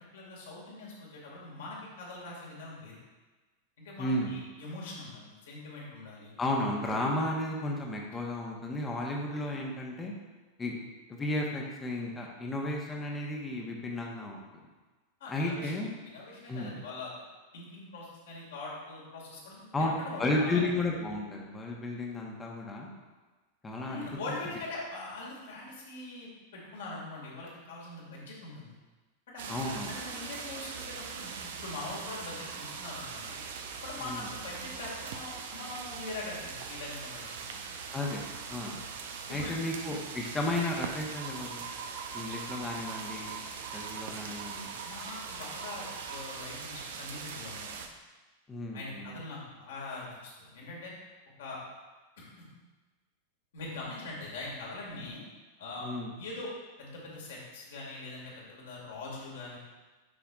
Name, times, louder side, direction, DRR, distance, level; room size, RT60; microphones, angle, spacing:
voice 1, 0.1-3.0 3.8-6.4 15.2-15.7 16.1-17.1 17.5-20.7 23.8-28.8 29.3-33.4 33.8-37.6 39.3-39.5 44.8-47.8 48.7-50.9 51.4-51.6 52.2-52.5 53.5-55.2 55.6-55.9 56.2-56.5 56.8-59.6, left 2 dB, 60° left, -4 dB, 2.3 m, -42 dB
voice 2, 4.0-4.3 6.4-10.1 10.6-10.8 11.1-14.5 15.3-15.9 16.5-16.7 19.7-19.9 20.2-22.9 23.6-24.0 29.5-29.9 34.1-34.3 37.9-38.2 38.5-38.8 39.3-41.6 42.1-43.4 43.7-44.8 48.5-49.1 55.8-56.1, left 1 dB, 15° left, -1 dB, 1.2 m, -33 dB
sound 1, 29.4-47.9, right 5 dB, 55° right, 0.6 m, -41 dB
10.0 x 5.8 x 2.5 m, 1.3 s
figure-of-eight pair, 90°, 0 cm